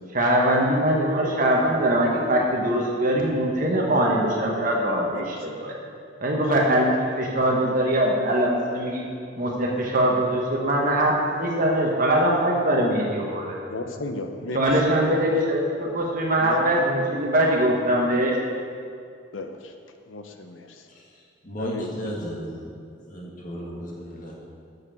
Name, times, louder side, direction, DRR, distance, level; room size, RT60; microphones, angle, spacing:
voice 1, 0.1-5.7 6.2-9.0 9.4-13.6 14.5-18.4, right 1 dB, 45° right, -2 dB, 1.2 m, -22 dB
voice 2, 13.7-14.6 15.1-15.2 16.4-16.7 19.3-19.7 20.1-20.9 21.6-22.0, left 2 dB, 85° left, 6 dB, 0.8 m, -34 dB
voice 3, 21.4-24.3, equal, 45° left, -3 dB, 1.7 m, -34 dB
8.5 x 6.6 x 6.3 m, 2.3 s
head